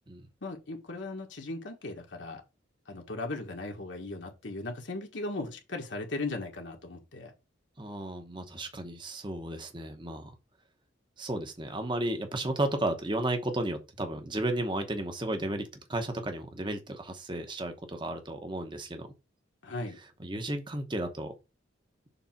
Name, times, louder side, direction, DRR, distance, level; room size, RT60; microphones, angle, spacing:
voice 1, 0.4-2.4 2.9-7.3 19.6-20.0, left 2 dB, 65° left, 1.5 m, -37 dB
voice 2, 7.8-10.3 11.2-19.1 20.2-21.3, right 1 dB, 25° right, 1.0 m, -33 dB
7.0 x 3.4 x 5.8 m
head